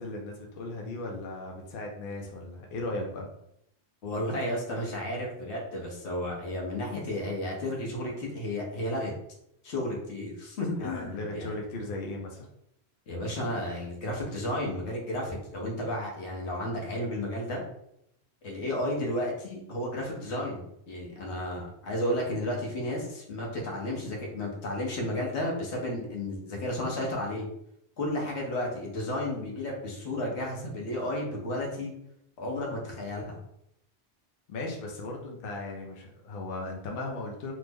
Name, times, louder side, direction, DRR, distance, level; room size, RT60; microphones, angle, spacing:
voice 1, 0.0-3.3 10.8-12.5 34.5-37.5, left 2 dB, 60° left, 0 dB, 0.7 m, -37 dB
voice 2, 4.0-9.1 9.6-11.5 13.1-17.6 18.4-27.5 28.0-31.9 32.4-33.4, left 1 dB, 80° left, -1 dB, 1.2 m, -32 dB
3.1 x 2.0 x 3.4 m, 0.76 s
omnidirectional pair, 1.1 m